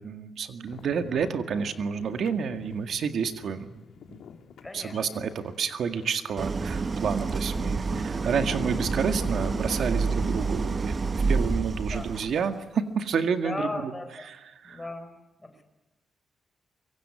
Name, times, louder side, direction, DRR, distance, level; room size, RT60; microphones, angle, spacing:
voice 1, 0.0-3.7 4.1-4.2 4.7-13.9 14.3-14.4 14.6-14.8, right 6 dB, 65° right, 8 dB, 1.9 m, -29 dB
sound 1, 0.7-10.4, left 7 dB, 80° left, 2.5 m, -46 dB
voice 2, 4.6-5.0 11.9-12.1 13.4-14.3 14.6-15.1 15.4-15.6, left 2 dB, 15° left, 6 dB, 5.7 m, -36 dB
Idling, 6.4-12.4, right 4 dB, 30° right, 0.9 m, -28 dB
24.5 x 24.0 x 9.8 m, 1.1 s
wide cardioid pair, 145°, 0 cm